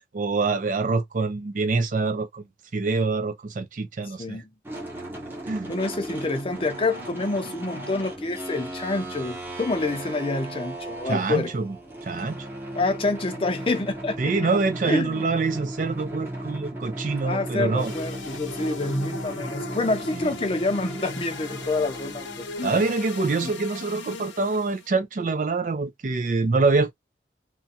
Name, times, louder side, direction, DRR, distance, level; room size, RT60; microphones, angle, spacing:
voice 1, 0.1-2.4 2.7-4.4 5.4-5.7 11.1-11.7 12.1-12.5 14.2-17.9 20.2-20.3 22.6-26.9, right 3 dB, 45° right, 0.4 m, -25 dB
voice 2, 4.2-4.5 5.7-11.5 12.7-14.2 14.8-15.2 17.2-22.8 23.4-23.5, left 3 dB, 30° left, 0.5 m, -27 dB
sound 1, 4.6-22.6, right 1 dB, 10° right, 0.7 m, -36 dB
sound 2, 17.8-24.9, left 3 dB, 80° left, 0.6 m, -38 dB
2.6 x 2.2 x 2.6 m
head